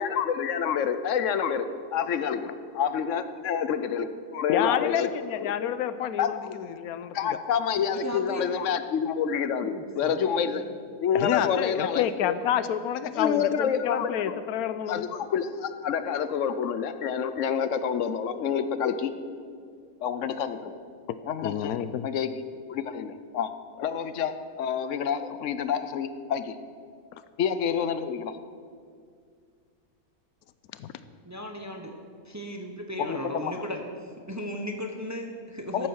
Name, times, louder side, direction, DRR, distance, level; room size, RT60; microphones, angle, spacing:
voice 1, 0.0-1.7 1.9-4.1 4.3-5.1 5.4-5.5 6.2-6.5 7.1-10.6 11.0-12.3 13.1-14.4 14.9-19.1 20.0-20.8 21.3-21.7 22.0-22.3 22.7-23.5 23.8-26.6 27.4-28.4 33.0-33.6 35.7-35.9, left 7 dB, 65° left, 11 dB, 0.9 m, -28 dB
voice 2, 4.5-7.4 11.1-15.1 21.1-21.2 21.4-22.1 30.8-30.9, left 10 dB, 80° left, 13 dB, 1.1 m, -29 dB
voice 3, 7.9-8.5 9.6-10.6 31.3-31.9 32.2-33.8 34.3-35.9, equal, 15° right, 4 dB, 0.7 m, -36 dB
13.5 x 9.0 x 6.3 m, 2.2 s
omnidirectional pair, 1.6 m